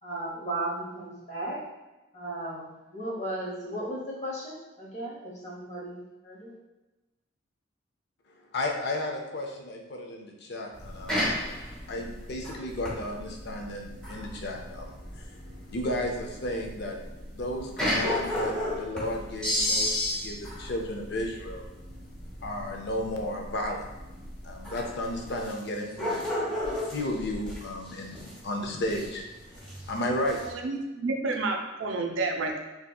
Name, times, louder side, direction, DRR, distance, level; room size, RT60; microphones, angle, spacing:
voice 1, 0.0-1.6 2.1-6.5, right 1 dB, 35° left, -4 dB, 0.8 m, -35 dB
voice 2, 8.5-11.3 11.9-17.0 17.3-21.7 22.4-23.9 24.4-26.3 26.7-29.2 29.9-30.4, left 1 dB, 60° left, 1 dB, 0.5 m, -33 dB
sound 1, 10.7-30.5, left 1 dB, 5° left, 0.8 m, -34 dB
voice 3, 30.6-32.6, right 3 dB, 85° right, 3 dB, 0.4 m, -29 dB
3.5 x 2.7 x 2.3 m, 1.1 s
head